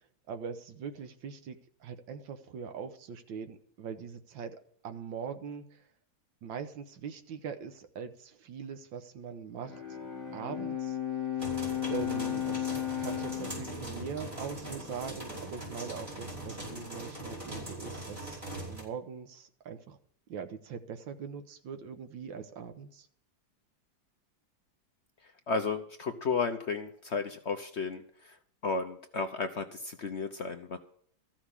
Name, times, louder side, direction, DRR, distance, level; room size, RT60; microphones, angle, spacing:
voice 1, 0.3-5.6 6.4-10.0 10.3-11.0 11.9-18.4 18.7-20.0 20.3-23.1, right 6 dB, 85° right, 8 dB, 1.8 m, -42 dB
Bowed string instrument, 9.6-15.1, left 10 dB, 10° left, 2.6 m, -35 dB
sound 1, 11.4-18.8, right 1 dB, 25° right, 5.4 m, -41 dB
voice 2, 25.5-28.4 28.6-30.8, left 4 dB, 55° left, 7 dB, 0.8 m, -33 dB
14.0 x 6.0 x 9.8 m, 0.62 s
omnidirectional pair, 2.0 m